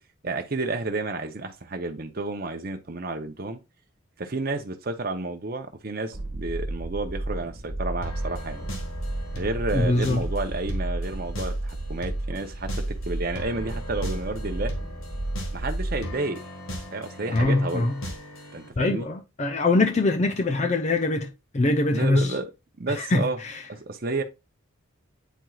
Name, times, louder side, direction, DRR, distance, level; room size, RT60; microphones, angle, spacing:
voice 1, 0.2-3.6 4.2-8.6 9.3-14.7 15.5-16.4 16.9-17.9 18.5-19.1 21.9-22.4 22.8-23.4 23.7-24.2, right 2 dB, 45° right, 0.7 m, -31 dB
sound 1, 6.1-16.0, right 1 dB, 65° right, 1.3 m, -32 dB
sound 2, 8.0-18.7, left 1 dB, 75° left, 1.7 m, -38 dB
voice 2, 9.7-10.2 17.3-17.9 18.8-22.4 22.9-23.6, left 2 dB, 30° left, 0.5 m, -23 dB
9.1 x 4.5 x 2.3 m
head